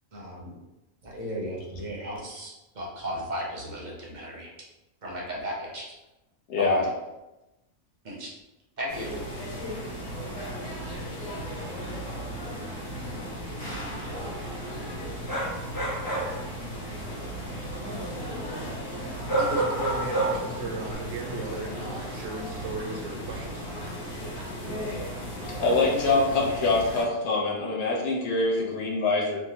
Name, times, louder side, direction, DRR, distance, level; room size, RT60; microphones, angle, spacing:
voice 1, 0.1-0.6 1.0-4.5 5.0-5.8 6.6-6.8 8.0-8.3 8.8-9.1, equal, 45° right, -4 dB, 0.7 m, -35 dB
voice 2, 6.5-6.8 25.6-29.4, left 3 dB, 60° left, -3 dB, 1.0 m, -24 dB
sound 1, 8.9-27.0, equal, 85° left, 1.7 m, -36 dB
sound 2, 15.3-16.4 19.3-20.6 20.9-21.0, right 2 dB, 25° left, 0.5 m, -27 dB
voice 3, 19.4-23.6, right 2 dB, 85° right, 1 dB, 1.0 m, -36 dB
3.4 x 2.1 x 2.8 m, 1.0 s
omnidirectional pair, 1.3 m